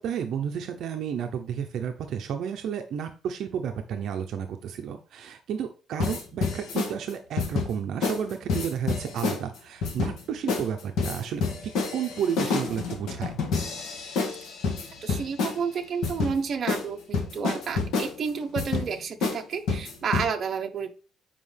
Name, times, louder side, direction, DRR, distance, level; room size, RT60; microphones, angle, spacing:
voice 1, 0.0-13.3, right 8 dB, 60° right, 5 dB, 0.7 m, -32 dB
sound 1, 6.0-6.9 7.4-7.7 8.0-8.2 8.5-9.4 9.8-10.2 10.5-10.7 11.0-15.6 16.0-16.3 16.7-16.8 17.1-18.1 18.6-18.9 19.2-19.4 19.7-20.3, left 4 dB, 75° left, 1.6 m, -28 dB
voice 2, 15.0-20.9, right 6 dB, 35° right, 4 dB, 0.9 m, -31 dB
7.6 x 5.0 x 3.3 m, 0.37 s
cardioid pair, 170°, 0 cm